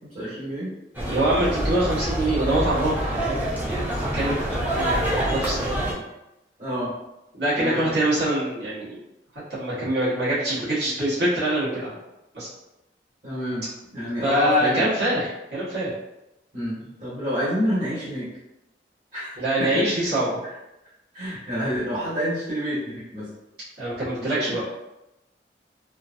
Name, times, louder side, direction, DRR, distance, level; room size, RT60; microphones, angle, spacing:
voice 1, 0.1-0.8 6.6-6.9 7.6-7.9 13.2-13.6 13.9-14.9 16.5-18.3 19.1-19.8 20.4-20.5 21.1-23.3 24.2-24.6, equal, 45° right, -11 dB, 1.4 m, -28 dB
sound 1, 0.9-5.9, right 1 dB, 10° right, 0.5 m, -26 dB
voice 2, 1.1-3.8 4.1-5.7 7.3-9.0 9.5-11.9 12.3-12.5 14.2-15.9 19.4-20.4 23.8-24.6, right 1 dB, 75° right, -11 dB, 1.3 m, -24 dB
3.0 x 2.3 x 2.5 m, 0.93 s
head